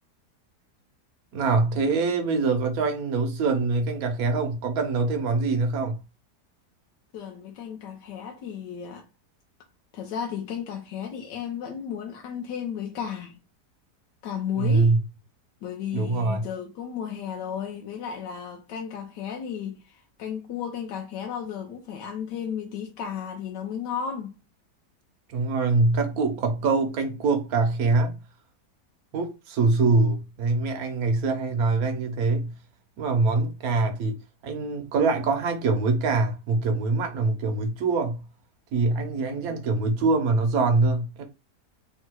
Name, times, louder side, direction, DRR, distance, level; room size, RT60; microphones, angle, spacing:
voice 1, 1.3-6.0 14.6-15.0 15.9-16.4 25.3-28.2 29.1-32.5 33.0-34.2 34.4-38.2 38.7-41.2, right 3 dB, 65° right, 1.2 m, -24 dB
voice 2, 7.1-9.1 9.9-13.4 14.2-14.9 15.6-24.4, left 8 dB, 90° left, 1.3 m, -34 dB
3.7 x 2.7 x 4.5 m
omnidirectional pair, 1.8 m